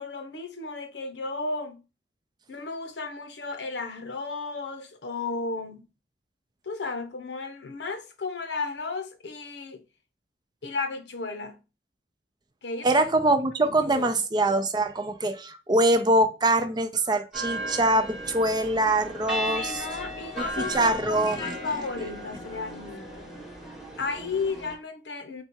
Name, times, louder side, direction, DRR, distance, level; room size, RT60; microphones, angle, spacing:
voice 1, 0.0-1.8 2.5-5.8 6.6-9.8 10.6-11.6 12.6-13.0 13.6-14.2 19.5-23.4 24.0-25.4, left 3 dB, 80° left, 0.8 m, -34 dB
voice 2, 12.8-19.9 20.6-21.6, right 1 dB, 25° right, 0.4 m, -23 dB
sound 1, 17.3-24.7, equal, 5° right, 0.9 m, -36 dB
4.1 x 2.4 x 4.3 m
head